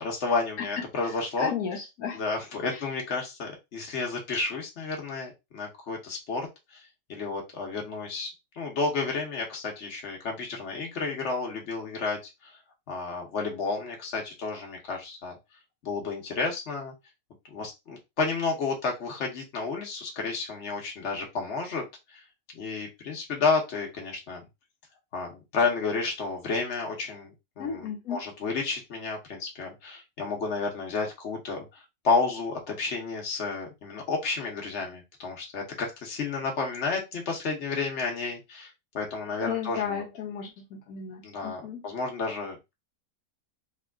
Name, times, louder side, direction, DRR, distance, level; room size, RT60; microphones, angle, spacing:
voice 1, 0.0-1.5 2.1-6.5 6.7-6.8 7.1-8.3 8.5-12.5 12.9-15.4 15.8-16.9 17.5-21.8 22.1-22.2 22.5-24.4 25.1-40.0 41.2-42.7, left 4 dB, 55° left, 1 dB, 1.4 m, -31 dB
voice 2, 0.6-2.2 2.6-2.9 27.6-28.2 39.5-41.8, left 7 dB, 80° left, 2 dB, 1.3 m, -34 dB
3.5 x 2.5 x 3.5 m, 0.22 s
omnidirectional pair, 1.5 m